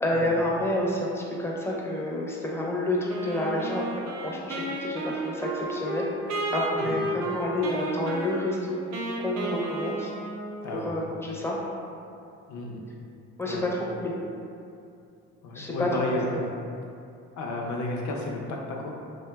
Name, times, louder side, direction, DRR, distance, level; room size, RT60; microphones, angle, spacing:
voice 1, 0.0-3.9 4.2-8.8 9.2-10.1 10.8-11.6 13.4-13.7 14.0-14.1 15.5-15.9, left 1 dB, 10° left, -3 dB, 0.4 m, -29 dB
Wind instrument woodwind instrument, 3.1-10.8, right 2 dB, 55° right, 0.4 m, -33 dB
voice 2, 12.5-12.8 13.4-13.7 15.4-16.4 17.4-19.0, left 2 dB, 65° left, 0 dB, 0.5 m, -32 dB
2.6 x 2.1 x 2.2 m, 2.5 s
supercardioid pair, 60°, 33 cm